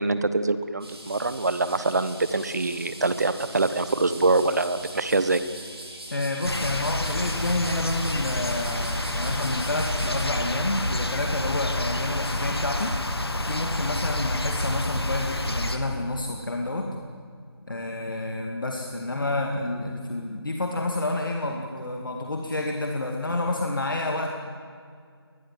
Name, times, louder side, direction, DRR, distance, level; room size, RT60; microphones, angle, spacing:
voice 1, 0.0-5.4, right 3 dB, 40° right, 13 dB, 1.2 m, -24 dB
sound 1, 0.8-10.2, right 1 dB, 70° right, 6.4 m, -41 dB
voice 2, 6.1-13.0 13.3-17.1 17.7-24.3, left 2 dB, 50° left, 2 dB, 2.4 m, -29 dB
sound 2, 6.4-15.8, left 1 dB, 70° left, 2.5 m, -28 dB
23.5 x 20.5 x 7.7 m, 2.1 s
figure-of-eight pair, 170°, 14 cm